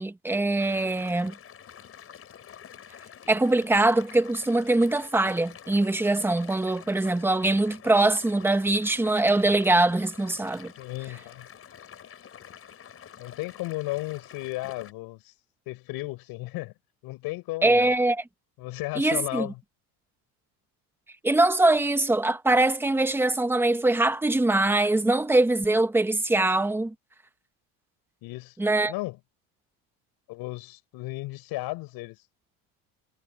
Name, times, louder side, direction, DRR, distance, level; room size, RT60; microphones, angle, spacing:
voice 1, 0.0-1.3 3.3-10.7 17.6-18.2 19.0-19.5 21.2-26.9 28.6-28.9, right 2 dB, 5° right, 1.2 m, -23 dB
sound 1, 0.6-14.9, left 9 dB, 35° left, 5.6 m, -47 dB
voice 2, 10.8-11.5 13.2-15.3 15.7-16.7 17.0-17.9 18.6-19.6 28.2-28.6 28.9-29.2 30.3-32.2, left 20 dB, 65° left, 5.8 m, -34 dB
cardioid pair, 140°, 40 cm